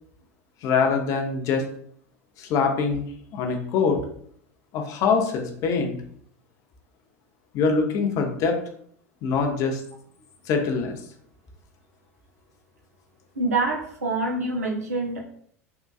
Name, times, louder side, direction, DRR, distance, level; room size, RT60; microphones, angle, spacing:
voice 1, 0.6-1.7 2.4-3.0 3.3-4.0 4.7-6.0 7.5-8.6 9.2-9.8 10.5-11.0, left 5 dB, 45° left, 3 dB, 0.5 m, -23 dB
voice 2, 13.3-15.2, right 3 dB, 80° right, 0 dB, 0.6 m, -26 dB
3.6 x 2.3 x 2.3 m, 0.63 s
figure-of-eight pair, 80°, 8 cm